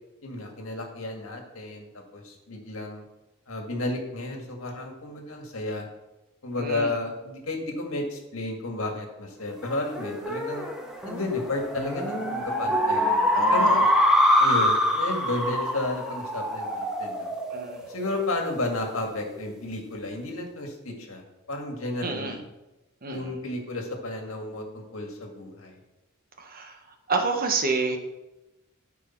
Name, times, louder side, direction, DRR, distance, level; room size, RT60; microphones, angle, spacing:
voice 1, 0.2-3.0 3.5-5.9 6.4-10.7 11.0-13.8 14.4-17.3 17.9-21.2 21.5-22.4 23.1-25.8, left 2 dB, 75° left, 2 dB, 1.9 m, -32 dB
voice 2, 6.6-6.9 13.3-13.9 17.5-17.8 22.0-22.4 23.0-23.4 26.4-26.8 27.1-28.0, right 4 dB, 45° right, 4 dB, 1.2 m, -29 dB
sound 1, 9.6-18.5, equal, 5° right, 1.3 m, -25 dB
13.5 x 4.9 x 4.5 m, 0.99 s
head